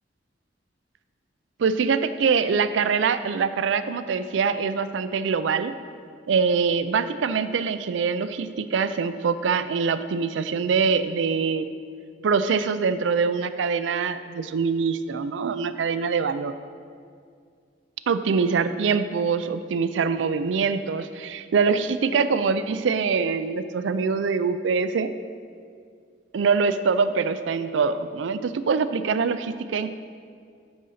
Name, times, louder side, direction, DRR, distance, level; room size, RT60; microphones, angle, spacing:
voice 1, 1.6-5.8 6.3-11.7 12.2-16.6 18.1-25.1 26.3-29.9, right 5 dB, 80° right, 12 dB, 0.4 m, -24 dB
9.5 x 4.0 x 6.4 m, 2.2 s
head